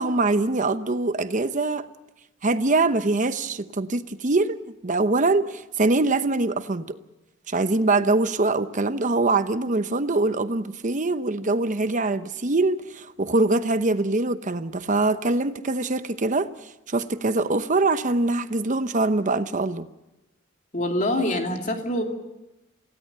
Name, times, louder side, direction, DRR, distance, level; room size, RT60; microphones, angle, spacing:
voice 1, 0.0-1.9 2.4-4.6 4.8-7.0 7.5-16.5 16.9-19.9, right 2 dB, 40° right, 0.9 m, -23 dB
voice 2, 20.7-22.0, left 1 dB, 40° left, 2.7 m, -25 dB
27.5 x 16.5 x 6.8 m
head